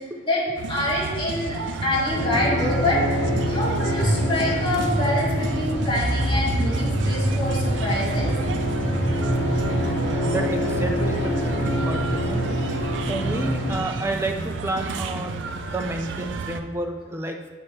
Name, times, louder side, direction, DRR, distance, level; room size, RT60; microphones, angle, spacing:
sound 1, 0.6-16.6, right 4 dB, 80° right, 0.4 m, -32 dB
voice 1, 0.7-3.0 3.5-8.3, left 2 dB, 25° left, -7 dB, 1.7 m, -26 dB
sound 2, 2.1-13.7, equal, 75° left, 1.3 m, -26 dB
sound 3, 3.9-9.8, equal, 35° right, 1.3 m, -27 dB
voice 2, 10.3-12.6 13.1-17.5, right 2 dB, 15° right, 3 dB, 0.4 m, -30 dB
7.5 x 4.4 x 3.2 m, 1.4 s
head